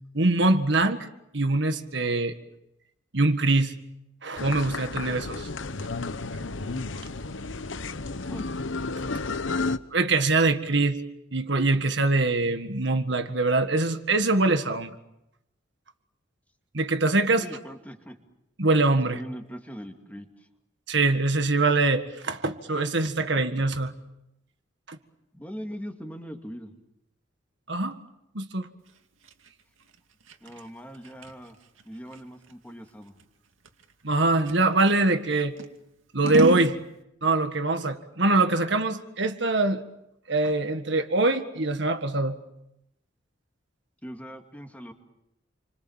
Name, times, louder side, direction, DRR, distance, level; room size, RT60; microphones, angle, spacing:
voice 1, 0.1-1.1 1.3-2.4 3.1-3.7 4.2-5.5 9.9-11.0 11.3-15.0 16.7-17.5 18.6-19.2 20.9-23.9 24.9-25.0 27.7-28.0 28.4-28.7 34.0-35.5 36.1-36.8 37.2-39.8 40.3-42.4, right 2 dB, 60° right, 8 dB, 1.7 m, -23 dB
sound 1, 4.4-9.8, left 3 dB, 75° left, 1.0 m, -32 dB
voice 2, 17.3-18.2 19.1-20.5 25.3-26.7 30.4-31.6 31.8-33.1 44.0-44.9, equal, 10° left, 4 dB, 2.4 m, -40 dB
Scissors, 28.9-35.0 35.6-36.7, right 1 dB, 90° right, 2.5 m, -34 dB
29.5 x 25.0 x 7.4 m, 0.85 s
head